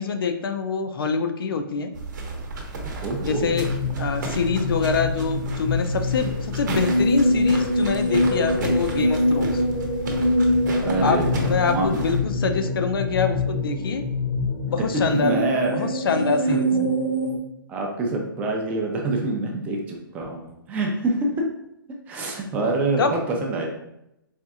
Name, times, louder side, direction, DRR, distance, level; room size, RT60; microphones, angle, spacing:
voice 1, 0.0-1.9 3.2-3.7 4.0-9.6 11.0-14.0 14.7-15.5 15.8-16.7 23.0-23.1, left 5 dB, 75° left, 8 dB, 0.4 m, -25 dB
sound 1, 1.9-12.2, right 2 dB, 55° right, 0.8 m, -33 dB
voice 2, 3.0-3.5 10.8-12.0 14.8-16.9 17.7-21.3 22.1-23.7, right 2 dB, 10° right, 0 dB, 0.4 m, -26 dB
sound 2, 3.2-17.4, left 1 dB, 60° left, 0.8 m, -24 dB
4.2 x 2.5 x 2.4 m, 0.83 s
hypercardioid pair, 150°, 12 cm